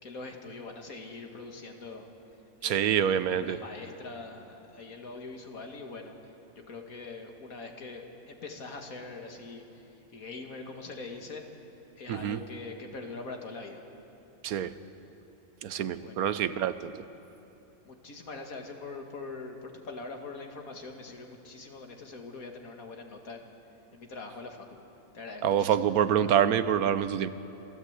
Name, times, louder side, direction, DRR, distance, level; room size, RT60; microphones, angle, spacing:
voice 1, 0.0-2.1 2.6-3.0 3.3-6.1 6.6-9.8 10.1-11.4 12.0-13.8 16.0-16.3 17.9-23.5 23.9-24.7 25.1-26.0, left 3 dB, 70° left, 3 dB, 2.3 m, -43 dB
voice 2, 2.6-3.6 12.1-12.4 14.4-14.7 15.6-17.0 25.4-27.3, right 9 dB, 85° right, 13 dB, 1.2 m, -26 dB
27.5 x 14.0 x 8.1 m, 2.9 s
omnidirectional pair, 1.5 m